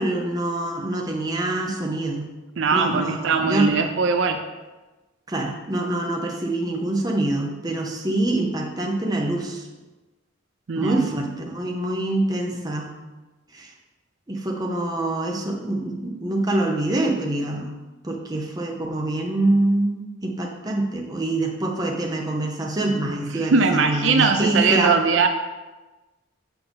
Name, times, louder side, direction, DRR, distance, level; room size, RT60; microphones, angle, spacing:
voice 1, 0.0-2.3 2.7-3.7 5.3-9.6 10.8-12.9 13.5-13.7 14.3-17.7 18.0-25.0, right 1 dB, 20° right, 1 dB, 0.7 m, -25 dB
voice 2, 2.6-4.4 10.7-11.0 23.3-25.3, right 4 dB, 70° right, 7 dB, 0.5 m, -20 dB
6.7 x 6.1 x 3.5 m, 1.2 s
head